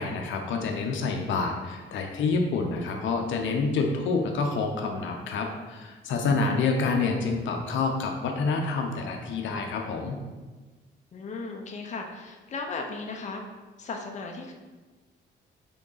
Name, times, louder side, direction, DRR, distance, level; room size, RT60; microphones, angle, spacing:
voice 1, 0.0-10.2, left 4 dB, 75° left, 2 dB, 0.6 m, -28 dB
voice 2, 11.1-13.4 13.8-14.5, left 4 dB, 35° left, 2 dB, 0.6 m, -37 dB
3.8 x 3.5 x 3.9 m, 1.3 s
cardioid pair, 90°, 20 cm